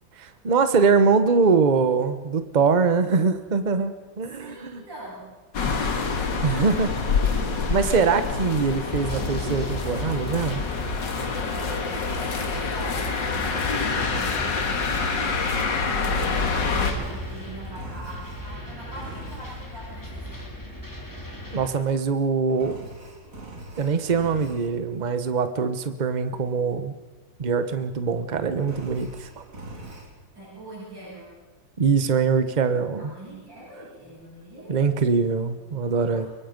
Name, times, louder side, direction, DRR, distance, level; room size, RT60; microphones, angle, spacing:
voice 1, 0.2-4.8 6.4-6.9 7.2-10.6 21.5-22.8 23.8-26.9 27.4-29.4 31.8-33.1 34.7-36.3, right 5 dB, 30° right, 10 dB, 1.0 m, -23 dB
voice 2, 4.3-5.3 11.1-15.2 15.8-20.4 30.3-31.4 33.0-35.0 35.6-36.3, right 1 dB, 80° right, -7 dB, 8.9 m, -43 dB
sound 1, 5.5-16.9, left 4 dB, 75° left, 2.4 m, -26 dB
sound 2, 8.9-21.7, left 1 dB, 10° left, 3.0 m, -36 dB
Engine, 13.9-18.6 18.9-19.7 22.5-24.8 28.6-30.1, right 2 dB, 45° right, 2.9 m, -42 dB
23.0 x 23.0 x 5.3 m, 1.2 s
omnidirectional pair, 2.0 m